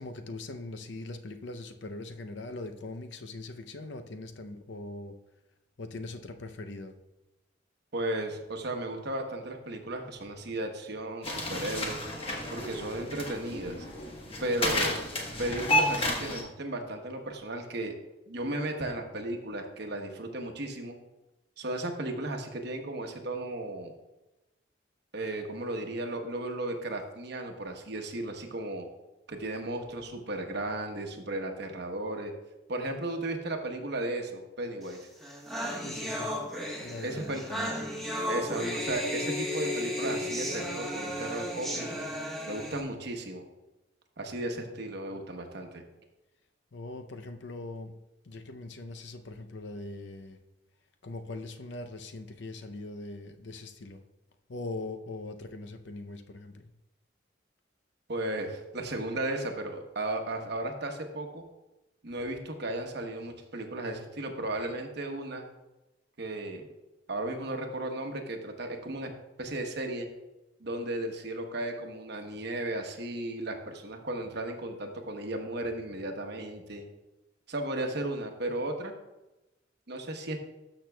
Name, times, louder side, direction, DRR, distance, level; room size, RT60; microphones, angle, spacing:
voice 1, 0.0-5.2 5.8-7.0 35.8-36.3 36.8-37.9 44.6-44.7 45.0-45.3 46.7-47.9 48.2-50.4 51.0-54.0 54.5-56.7, left 2 dB, 65° left, 7 dB, 0.6 m, -41 dB
voice 2, 7.9-12.0 12.5-13.9 14.4-15.0 15.4-18.0 18.3-21.0 21.6-23.9 25.1-28.9 29.3-32.3 32.7-35.0 37.0-37.4 38.3-42.1 42.5-43.5 44.2-45.8 58.1-61.4 62.0-65.5 66.2-66.7 67.1-69.1 69.4-70.1 70.6-76.9 77.5-78.9 79.9-80.4, right 1 dB, 60° right, 4 dB, 1.0 m, -35 dB
sound 1, 11.2-16.4, left 1 dB, 30° left, 1.2 m, -31 dB
sound 2, 34.9-35.0 35.2-42.8, left 1 dB, ahead, 1.2 m, -34 dB
13.0 x 6.0 x 2.3 m, 0.99 s
head